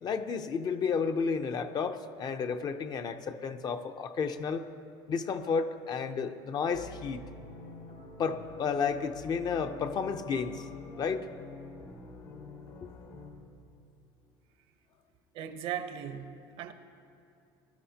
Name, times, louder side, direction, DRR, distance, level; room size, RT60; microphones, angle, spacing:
voice 1, 0.0-4.6 5.1-7.2 8.2-10.7 11.0-11.3 12.8-12.9, left 5 dB, 40° left, 8 dB, 0.6 m, -32 dB
sound 1, 6.7-13.3, left 3 dB, 70° left, 1.7 m, -47 dB
voice 2, 15.3-16.7, right 9 dB, 65° right, 9 dB, 0.8 m, -38 dB
19.5 x 12.5 x 2.8 m, 2.6 s
supercardioid pair, 110°, 11 cm